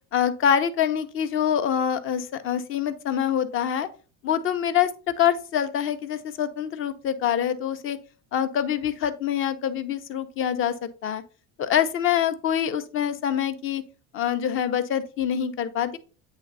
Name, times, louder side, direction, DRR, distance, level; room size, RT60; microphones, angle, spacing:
voice 1, 0.1-3.9 4.2-4.9 5.2-8.0 8.3-10.7 11.0-11.2 11.6-13.8 14.1-16.0, left 9 dB, 35° left, 10 dB, 0.6 m, -25 dB
9.0 x 3.4 x 3.9 m, 0.36 s
cardioid pair, 155°, 35 cm